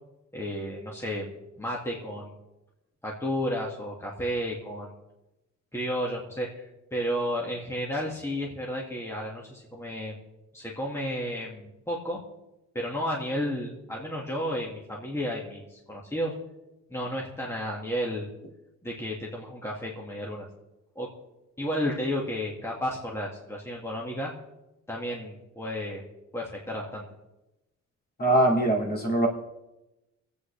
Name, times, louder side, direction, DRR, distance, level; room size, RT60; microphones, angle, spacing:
voice 1, 0.3-1.3 1.6-2.4 3.0-4.9 5.7-10.2 10.5-12.2 12.7-16.3 16.9-18.3 18.8-20.5 21.0-21.1 21.6-24.3 24.9-26.0 26.3-27.0, equal, 10° left, -3 dB, 2.0 m, -32 dB
voice 2, 28.2-29.3, right 1 dB, 30° left, 0 dB, 2.7 m, -22 dB
25.0 x 8.5 x 3.4 m, 0.97 s
cardioid pair, 90°, 30 cm